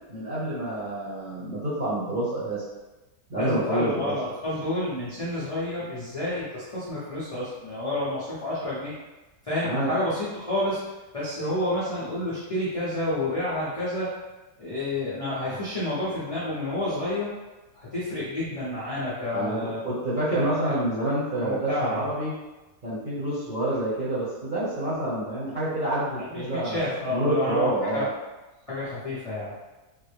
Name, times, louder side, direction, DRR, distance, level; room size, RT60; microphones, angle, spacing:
voice 1, 0.1-2.6 3.3-4.1 9.6-10.0 19.3-22.3 22.8-28.1, right 1 dB, 35° right, -10 dB, 0.9 m, -28 dB
voice 2, 3.4-8.9 9.4-10.8 11.1-14.1 14.6-17.3 17.7-19.8 20.3-20.7 21.4-22.1 26.2-28.1 28.7-29.5, left 1 dB, 35° left, -10 dB, 0.5 m, -29 dB
3.6 x 2.1 x 3.2 m, 1.1 s
omnidirectional pair, 1.7 m